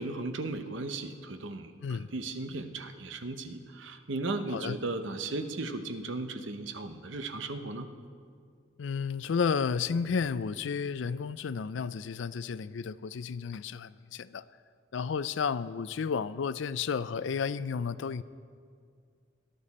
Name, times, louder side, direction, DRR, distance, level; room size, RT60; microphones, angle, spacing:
voice 1, 0.0-7.9, right 2 dB, 75° right, 8 dB, 0.9 m, -36 dB
voice 2, 8.8-14.4 14.9-18.2, left 6 dB, 75° left, 16 dB, 0.4 m, -32 dB
18.0 x 11.5 x 4.2 m, 2.2 s
head